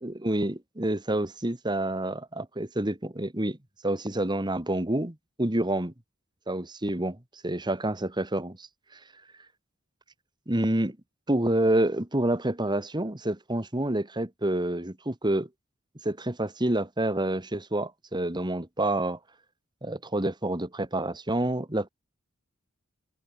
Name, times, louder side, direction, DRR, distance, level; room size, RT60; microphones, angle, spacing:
voice 1, 0.0-3.6 3.8-5.9 6.5-7.2 7.4-9.0 10.5-11.0 11.3-15.5 16.0-19.2 19.8-21.9, right 1 dB, 20° right, 1.8 m, -28 dB
open air
head